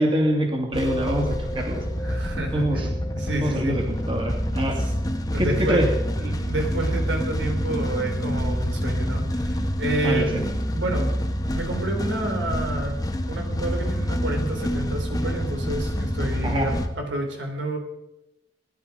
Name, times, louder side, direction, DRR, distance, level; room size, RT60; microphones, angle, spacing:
voice 1, 0.0-1.8 2.5-2.9 3.4-4.8 5.4-5.9 10.0-10.4 16.4-16.7, equal, 30° right, 1 dB, 2.6 m, -24 dB
sound 1, 0.7-16.9, equal, 20° left, 1.3 m, -27 dB
voice 2, 2.0-3.8 4.8-4.9 5.3-5.8 6.2-10.5 10.7-11.1 11.5-13.0 13.3-16.7 17.0-17.8, right 1 dB, 90° right, 2 dB, 3.9 m, -29 dB
19.5 x 11.5 x 5.2 m, 0.96 s
head